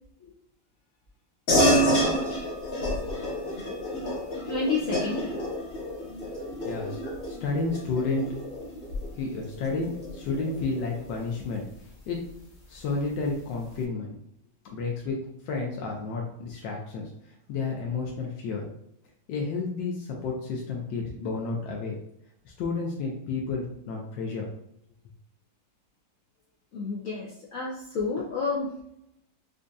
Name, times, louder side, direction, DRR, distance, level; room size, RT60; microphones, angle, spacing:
sound 1, 1.5-11.3, equal, 40° left, 1.0 m, -29 dB
voice 1, 4.5-5.3 7.0-7.1 26.7-28.7, left 4 dB, 65° left, -4 dB, 0.8 m, -30 dB
voice 2, 6.6-7.0 7.3-8.3 9.1-11.7 12.1-12.2 12.7-14.2 14.7-15.2 15.4-18.7 19.3-21.9 22.4-24.5, left 4 dB, 80° left, -1 dB, 1.3 m, -31 dB
5.2 x 2.5 x 2.3 m, 0.77 s
omnidirectional pair, 1.9 m